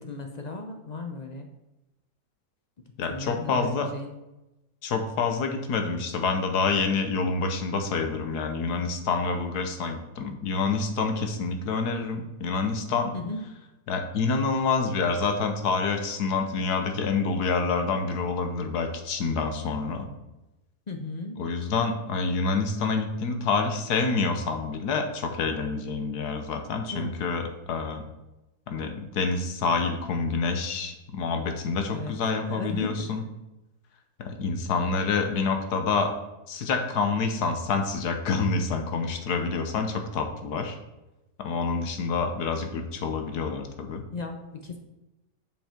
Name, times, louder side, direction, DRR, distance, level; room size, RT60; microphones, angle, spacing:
voice 1, 0.0-1.5 3.1-4.1 13.1-13.4 20.9-21.4 26.9-27.1 31.9-32.1 32.4-33.1 44.1-44.8, left 3 dB, 50° left, 4 dB, 0.5 m, -35 dB
voice 2, 3.0-3.9 4.8-13.1 13.9-20.1 21.4-28.0 28.7-33.3 34.2-36.1 36.5-40.8 41.4-44.0, left 4 dB, 90° left, 5 dB, 1.5 m, -27 dB
7.4 x 5.4 x 4.4 m, 0.98 s
omnidirectional pair, 1.7 m